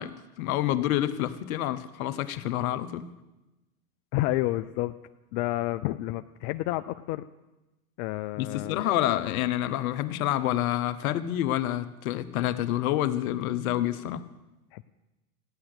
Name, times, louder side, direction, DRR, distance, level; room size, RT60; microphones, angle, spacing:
voice 1, 0.0-3.1 8.4-14.3, left 13 dB, 65° left, 1.2 m, -28 dB
voice 2, 4.1-4.9 5.3-7.2 8.0-8.8 14.7-14.8, left 16 dB, 50° left, 0.6 m, -30 dB
16.0 x 10.0 x 8.0 m
hypercardioid pair, 110°, 45 cm